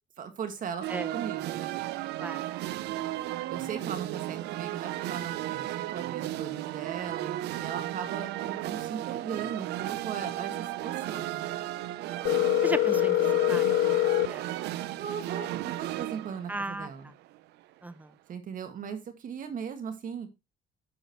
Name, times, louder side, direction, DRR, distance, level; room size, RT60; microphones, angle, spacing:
voice 1, 0.2-1.8 3.5-11.5 14.7-17.1 18.3-20.3, right 7 dB, 55° right, 2.0 m, -38 dB
sound 1, 0.8-17.4, right 15 dB, 80° right, 0.7 m, -35 dB
Telephone, 12.3-14.3, left 17 dB, 65° left, 0.7 m, -24 dB
voice 2, 12.6-14.5 16.5-16.9 17.8-18.1, right 2 dB, 10° right, 0.7 m, -36 dB
11.0 x 7.2 x 3.1 m
cardioid pair, 110°, 17 cm